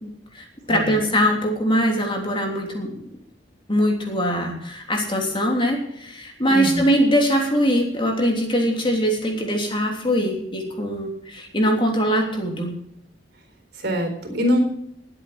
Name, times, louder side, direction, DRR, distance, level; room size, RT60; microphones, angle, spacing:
voice 1, 0.0-3.0 3.7-12.7, equal, 30° left, 1 dB, 3.2 m, -22 dB
voice 2, 0.7-1.0 6.4-6.8 13.7-14.6, equal, 60° right, 5 dB, 4.0 m, -24 dB
20.5 x 8.3 x 4.9 m, 0.75 s
head